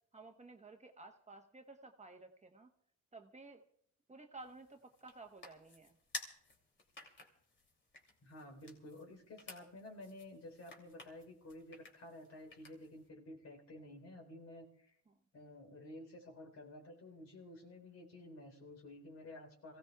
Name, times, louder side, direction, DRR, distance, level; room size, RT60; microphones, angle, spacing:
voice 1, 0.1-2.7 3.1-3.6 4.1-5.9 15.1-15.2, right 3 dB, 25° right, 5 dB, 1.2 m, -54 dB
sound 1, 4.4-13.1, left 2 dB, 40° left, 2.8 m, -54 dB
voice 2, 8.2-15.0 15.3-19.8, left 1 dB, 60° left, 2 dB, 3.9 m, -52 dB
27.0 x 16.5 x 2.3 m, 0.67 s
cardioid pair, 90°, 30 cm